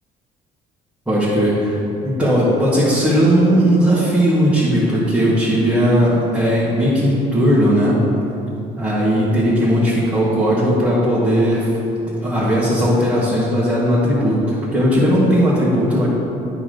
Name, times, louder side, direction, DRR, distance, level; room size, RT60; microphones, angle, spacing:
voice 1, 1.1-8.0 8.8-11.7 12.2-14.4 14.7-16.1, equal, 5° right, -10 dB, 1.8 m, -17 dB
8.6 x 4.0 x 6.6 m, 2.8 s
cardioid pair, 110°, 17 cm